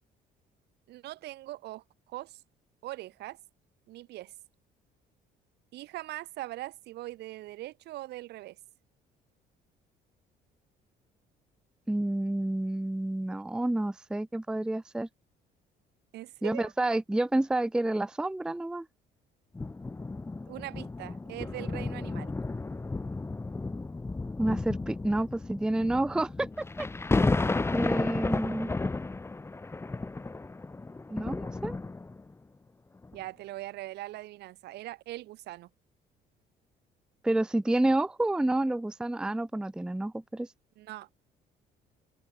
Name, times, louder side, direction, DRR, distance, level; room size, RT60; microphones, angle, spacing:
voice 1, 0.9-2.4 2.8-3.4 3.9-4.3 5.7-8.6 16.1-16.7 20.5-22.3 33.1-35.7 40.8-41.1, right 16 dB, 80° right, 4.4 m, -41 dB
voice 2, 11.9-15.1 16.4-18.9 24.4-26.5 26.8-26.9 27.7-28.7 31.1-31.8 37.2-40.5, right 1 dB, 5° right, 0.5 m, -29 dB
sound 1, 19.5-32.3 33.0-33.2, left 3 dB, 15° left, 1.3 m, -33 dB
cardioid pair, 110°, 17 cm